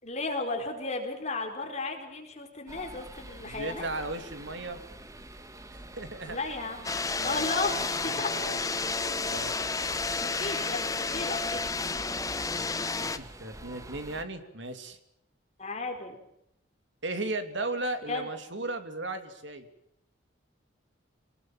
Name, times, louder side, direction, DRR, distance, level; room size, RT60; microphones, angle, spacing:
voice 1, 0.0-3.9 6.3-6.9 7.2-8.8 10.2-11.8 15.6-16.2 18.1-18.3, left 3 dB, 35° left, 3 dB, 4.5 m, -34 dB
sound 1, 2.7-14.2, right 1 dB, 15° right, 1.5 m, -46 dB
voice 2, 3.4-4.8 6.0-6.4 7.2-7.4 8.0-9.6 12.6-15.0 17.0-19.7, right 2 dB, 65° right, 9 dB, 2.7 m, -36 dB
sound 2, 6.8-13.2, left 4 dB, 15° left, 1.0 m, -31 dB
26.5 x 20.0 x 7.6 m, 0.79 s
head